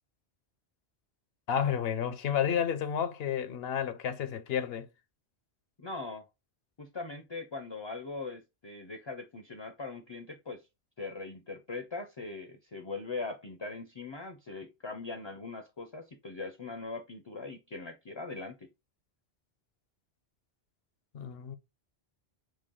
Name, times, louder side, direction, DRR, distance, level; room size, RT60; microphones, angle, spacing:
voice 1, 1.5-4.9 21.1-21.6, left 8 dB, 70° left, 0.8 m, -31 dB
voice 2, 5.8-6.2 6.8-10.6 11.0-18.7, left 3 dB, 35° left, 0.4 m, -41 dB
5.0 x 2.2 x 3.7 m
omnidirectional pair, 1.1 m